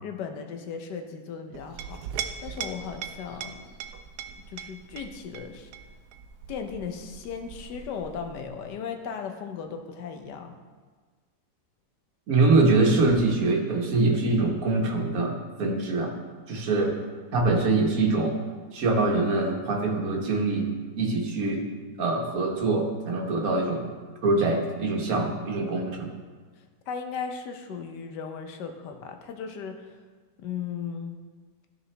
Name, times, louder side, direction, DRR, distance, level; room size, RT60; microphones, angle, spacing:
voice 1, 0.0-2.0 2.4-3.7 4.5-5.7 6.5-10.6 26.6-30.0 30.4-31.2, left 6 dB, 80° left, 6 dB, 1.4 m, -36 dB
Chink clink, 1.5-8.6, right 7 dB, 75° right, 1.1 m, -40 dB
voice 2, 12.3-16.1 16.5-16.9 17.3-18.3 18.7-20.7 21.0-21.6 22.0-23.8 24.2-26.1, right 3 dB, 60° right, 1 dB, 1.4 m, -24 dB
12.5 x 5.0 x 3.3 m, 1.5 s
omnidirectional pair, 1.8 m